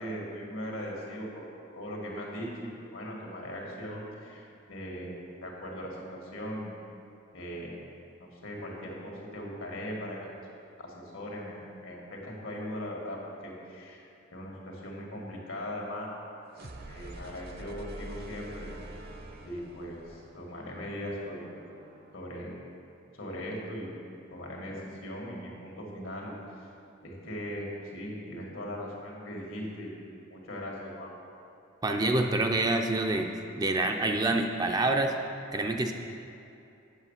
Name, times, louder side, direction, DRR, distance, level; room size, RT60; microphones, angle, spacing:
voice 1, 0.0-1.5 1.7-5.1 5.4-6.7 7.3-7.8 8.2-10.3 10.8-14.0 14.3-16.2 16.6-18.7 19.4-21.4 22.1-22.6 23.1-23.9 24.3-26.7 27.0-29.9 30.3-31.1, equal, 80° left, -2 dB, 1.9 m, -39 dB
sound 1, 16.5-22.3, right 1 dB, 50° right, 0.7 m, -46 dB
voice 2, 31.8-33.3 33.6-35.1 35.5-35.9, right 2 dB, 20° right, 4 dB, 0.4 m, -26 dB
8.2 x 7.2 x 5.6 m, 2.7 s
head